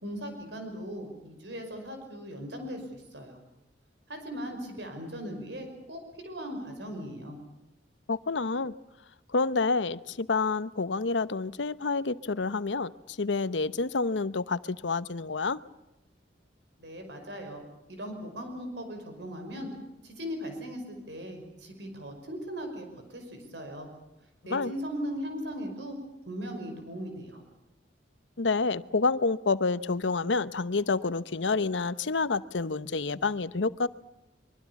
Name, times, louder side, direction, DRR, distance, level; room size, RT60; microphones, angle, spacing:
voice 1, 0.0-3.4 4.1-7.4 16.8-17.6 17.9-19.7 20.0-23.9 24.5-26.0 26.3-27.4, equal, 70° right, 5 dB, 5.5 m, -38 dB
voice 2, 8.1-8.7 9.3-12.9 13.2-15.6 24.5-24.7 28.4-33.9, left 4 dB, 85° left, 16 dB, 0.9 m, -28 dB
25.0 x 23.5 x 7.1 m, 0.92 s
head